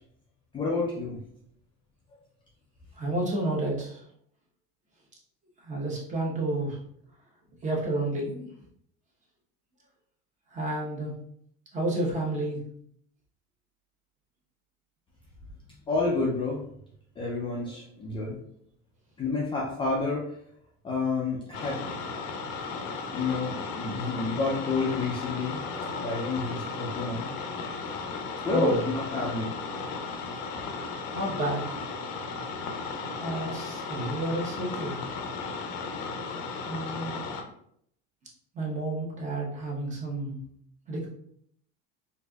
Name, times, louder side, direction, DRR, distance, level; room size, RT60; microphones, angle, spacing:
voice 1, 0.5-1.2 15.9-16.6 17.2-18.4 19.2-20.3 20.8-21.8 22.4-22.6 23.1-27.3 28.4-29.5, left 3 dB, 15° left, -4 dB, 0.4 m, -29 dB
voice 2, 3.0-4.0 5.6-6.8 7.6-8.5 10.5-11.1 11.7-12.6 28.4-28.8 31.1-31.6 33.1-35.1 36.6-37.2 38.5-40.4 40.9-41.1, right 2 dB, 25° right, -3 dB, 1.0 m, -30 dB
sound 1, 21.5-37.4, left 4 dB, 80° left, 0.7 m, -35 dB
4.3 x 2.6 x 2.3 m, 0.69 s
cardioid pair, 150°, 30 cm